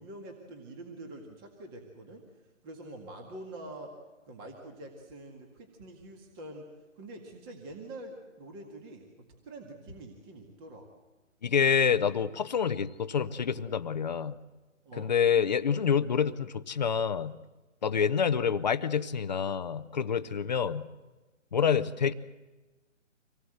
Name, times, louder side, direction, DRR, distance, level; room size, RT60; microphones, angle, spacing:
voice 1, 0.0-2.2 2.6-3.9 4.3-6.6 7.0-9.1 9.4-10.9 14.9-15.1, right 2 dB, 20° right, 2 dB, 1.9 m, -45 dB
voice 2, 11.4-14.4 15.0-17.3 17.8-20.8 21.5-22.1, left 7 dB, 35° left, 12 dB, 0.8 m, -27 dB
26.0 x 18.5 x 7.9 m, 1.2 s
hypercardioid pair, 160°, 39 cm